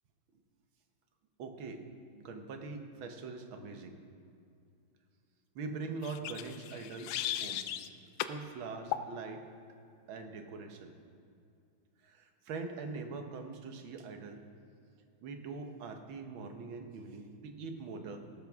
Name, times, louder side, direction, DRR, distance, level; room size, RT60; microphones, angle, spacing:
voice 1, 1.4-1.8 2.1-4.0 5.6-7.2 7.4-7.7 8.3-9.5 10.1-10.9 12.0-14.4 15.2-18.2, right 4 dB, 75° right, 5 dB, 1.8 m, -43 dB
sound 1, 6.0-7.9 8.2-8.4 8.9-9.1, left 11 dB, 80° left, 0.9 m, -37 dB
17.0 x 11.5 x 3.6 m, 2.5 s
omnidirectional pair, 2.2 m